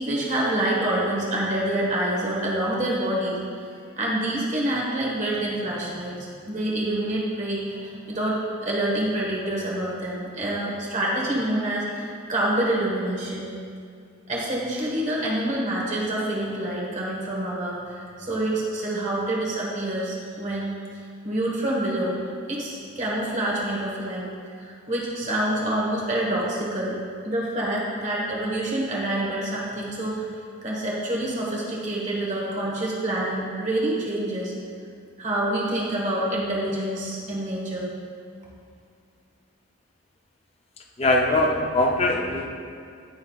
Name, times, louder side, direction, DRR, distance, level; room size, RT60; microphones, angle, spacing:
voice 1, 0.0-3.4 4.0-6.2 6.5-13.5 14.3-20.7 21.2-22.2 22.5-24.3 24.6-26.9 27.2-30.2 30.6-34.6 35.2-37.9, right 1 dB, 35° right, -4 dB, 1.4 m, -27 dB
voice 2, 41.0-42.5, left 2 dB, 30° left, 1 dB, 0.6 m, -21 dB
16.0 x 5.7 x 2.4 m, 2.3 s
head